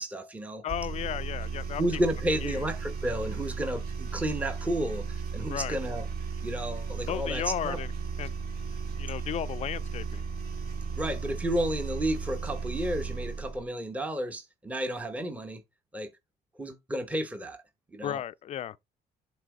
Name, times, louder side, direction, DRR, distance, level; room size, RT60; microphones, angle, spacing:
voice 1, 0.0-0.6 1.8-6.1 6.4-7.8 11.0-15.6 15.9-16.1 16.6-17.6 17.9-18.2, right 1 dB, 10° right, 0.9 m, -32 dB
voice 2, 0.6-1.8 2.4-2.6 5.5-5.8 7.1-7.9 8.2-8.3 9.0-10.2 18.0-18.8, left 10 dB, 40° left, 0.4 m, -34 dB
sound 1, 0.7-13.6, right 5 dB, 60° right, 2.4 m, -35 dB
7.5 x 3.0 x 4.8 m
cardioid pair, 110°, 17 cm